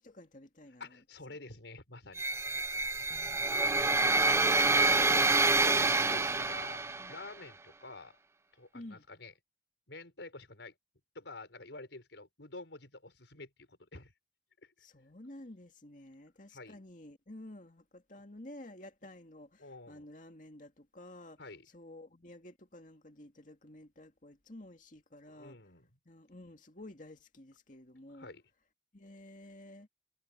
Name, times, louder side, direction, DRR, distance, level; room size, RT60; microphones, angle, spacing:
voice 1, 0.0-0.9 3.1-3.4 7.0-7.1 8.7-9.1 14.8-21.4 21.7-25.6 26.1-28.3 28.9-29.9, left 1 dB, 45° left, 2.3 m, -51 dB
voice 2, 0.8-2.7 3.4-3.6 4.7-5.3 5.6-6.8 7.1-8.2 8.5-9.3 9.9-10.7 11.1-14.1 14.6-14.7 16.5-16.8 19.6-20.0 21.4-21.7 25.3-25.9 28.1-28.4, left 2 dB, 90° left, 5.2 m, -49 dB
sound 1, 2.2-7.2, right 3 dB, 15° right, 0.4 m, -27 dB
head